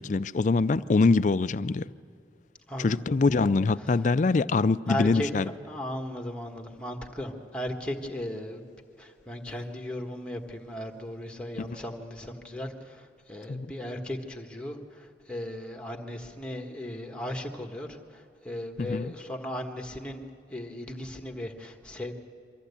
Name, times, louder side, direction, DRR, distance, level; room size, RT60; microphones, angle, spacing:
voice 1, 0.0-1.9 2.8-5.5 11.6-11.7 13.5-13.7 18.8-19.1, left 3 dB, 45° left, 0.4 m, -24 dB
voice 2, 2.7-3.0 3.4-3.5 4.9-5.3 5.7-8.7 9.0-20.2 20.5-22.1, left 1 dB, 5° left, 1.4 m, -36 dB
23.5 x 14.5 x 8.3 m
head